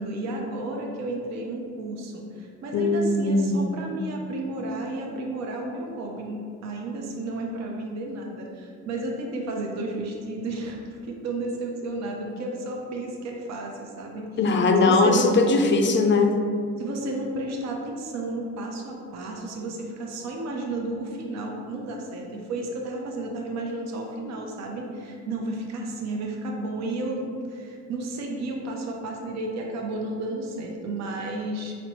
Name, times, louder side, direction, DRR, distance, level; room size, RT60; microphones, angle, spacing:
voice 1, 0.0-15.4 16.8-31.7, right 2 dB, 60° right, 0 dB, 0.6 m, -32 dB
voice 2, 2.7-3.7 14.4-16.4, left 3 dB, 40° left, 4 dB, 0.4 m, -20 dB
4.2 x 2.0 x 4.4 m, 2.3 s
cardioid pair, 90°, 30 cm